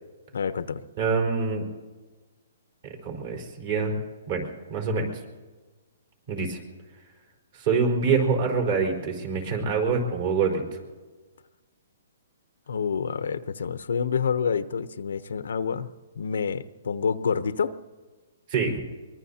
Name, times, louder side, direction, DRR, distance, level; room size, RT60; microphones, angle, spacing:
voice 1, 0.3-0.8 12.7-15.9 16.2-17.7, left 6 dB, 80° left, 13 dB, 0.8 m, -28 dB
voice 2, 1.0-1.6 2.8-3.9 4.3-5.2 6.3-6.6 7.5-10.6 18.5-18.8, right 5 dB, 45° right, 1 dB, 4.5 m, -25 dB
23.5 x 21.5 x 2.8 m, 1.3 s
hypercardioid pair, 150°, 0 cm